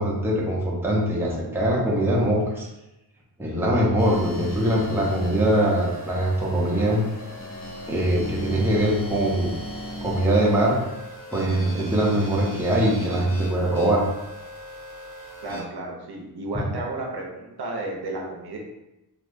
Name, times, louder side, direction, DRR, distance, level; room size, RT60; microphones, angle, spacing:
voice 1, 0.0-2.7 3.4-7.0 7.9-9.5 10.0-10.8 11.3-14.0, right 1 dB, 5° right, -4 dB, 0.6 m, -22 dB
sound 1, 4.0-15.6, equal, 55° left, 1.0 m, -37 dB
voice 2, 15.4-18.6, right 2 dB, 75° right, 0 dB, 0.7 m, -32 dB
3.2 x 2.5 x 2.6 m, 0.94 s
wide cardioid pair, 105°, 39 cm